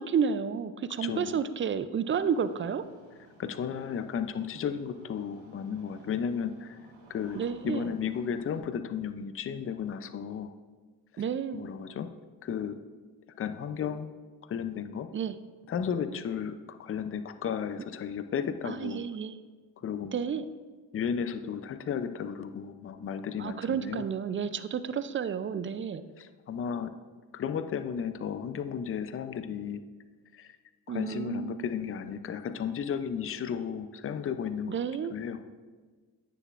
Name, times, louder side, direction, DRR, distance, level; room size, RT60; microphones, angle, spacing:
voice 1, 0.0-2.8 7.3-7.9 11.2-11.7 15.1-15.3 18.6-19.4 20.1-20.4 23.4-26.0 30.9-31.7 34.7-35.1, right 7 dB, 30° right, 13 dB, 0.4 m, -31 dB
voice 2, 1.0-1.4 3.4-6.8 7.1-10.5 11.1-11.2 11.5-12.1 12.4-12.8 13.4-14.1 14.5-15.1 15.7-19.0 19.8-20.3 20.9-24.1 26.2-26.9 27.3-29.8 30.3-30.5 30.9-34.7 35.1-35.4, left 7 dB, 30° left, 10 dB, 0.5 m, -34 dB
Engine starting, 2.1-8.6, right 1 dB, 85° right, 2.3 m, -57 dB
9.3 x 6.7 x 2.5 m, 1.4 s
supercardioid pair, 70°, 42 cm